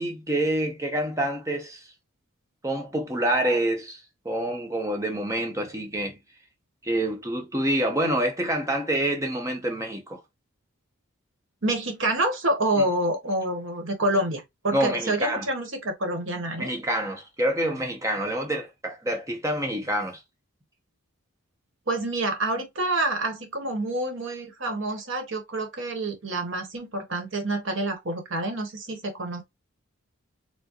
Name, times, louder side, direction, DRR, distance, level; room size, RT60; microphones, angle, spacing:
voice 1, 0.0-1.9 2.6-6.2 6.8-10.2 12.8-12.9 14.7-15.5 16.6-20.2, right 1 dB, 15° right, 0.7 m, -27 dB
voice 2, 11.6-16.7 21.9-29.4, right 1 dB, 60° right, 1.1 m, -27 dB
4.5 x 2.1 x 2.9 m
head